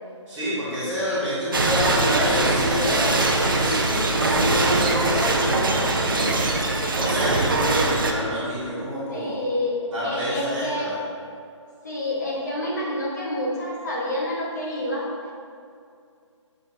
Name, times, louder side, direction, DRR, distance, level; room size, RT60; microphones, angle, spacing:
voice 1, 0.3-6.5 6.9-9.4 9.9-11.0, equal, ahead, -21 dB, 0.5 m, -27 dB
sound 1, 1.5-8.1, right 2 dB, 45° right, 0.6 m, -22 dB
voice 2, 9.1-11.0 11.8-15.1, left 1 dB, 35° left, -4 dB, 1.2 m, -28 dB
7.2 x 6.4 x 2.6 m, 2.4 s
hypercardioid pair, 180°, 16 cm